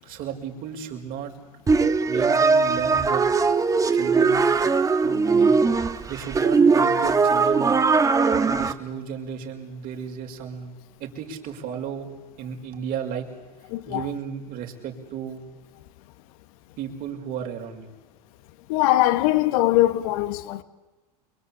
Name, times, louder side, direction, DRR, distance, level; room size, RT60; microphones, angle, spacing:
voice 1, 0.0-1.3 2.1-3.3 3.9-4.5 5.0-5.6 6.1-7.7 8.4-12.1 12.4-13.3 13.9-15.4 16.8-17.9, right 8 dB, 45° right, 5.7 m, -34 dB
sound 1, 1.7-8.7, right 4 dB, 15° right, 1.6 m, -20 dB
voice 2, 13.7-14.0 18.7-20.6, left 16 dB, 65° left, 1.8 m, -21 dB
28.5 x 23.0 x 8.7 m
hypercardioid pair, 110°, 20 cm